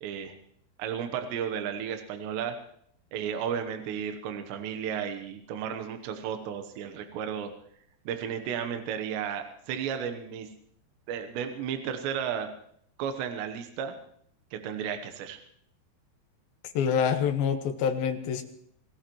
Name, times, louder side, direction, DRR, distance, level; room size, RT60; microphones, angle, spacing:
voice 1, 0.0-0.4 0.8-2.6 3.1-7.5 8.1-10.5 11.1-12.5 13.0-14.0 14.5-15.4, right 8 dB, 85° right, 7 dB, 3.3 m, -33 dB
voice 2, 16.7-18.4, left 7 dB, 70° left, 6 dB, 2.9 m, -26 dB
26.5 x 17.0 x 3.1 m, 0.66 s
omnidirectional pair, 5.0 m